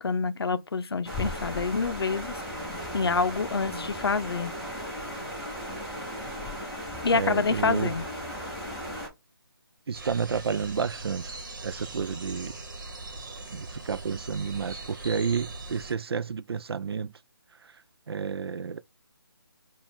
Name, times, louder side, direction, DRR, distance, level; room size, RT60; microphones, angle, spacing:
voice 1, 0.0-2.3 2.9-4.5 7.0-8.0, left 4 dB, 85° left, 0.5 m, -27 dB
sound 1, 1.0-9.1, equal, ahead, 0.9 m, -36 dB
voice 2, 7.1-7.9 9.9-12.5 13.5-17.1 17.6-17.8 18.1-18.8, right 6 dB, 80° right, 0.4 m, -31 dB
sound 2, 9.9-15.9, right 2 dB, 55° right, 1.2 m, -40 dB
4.6 x 2.4 x 3.4 m
hypercardioid pair, 165°, 13 cm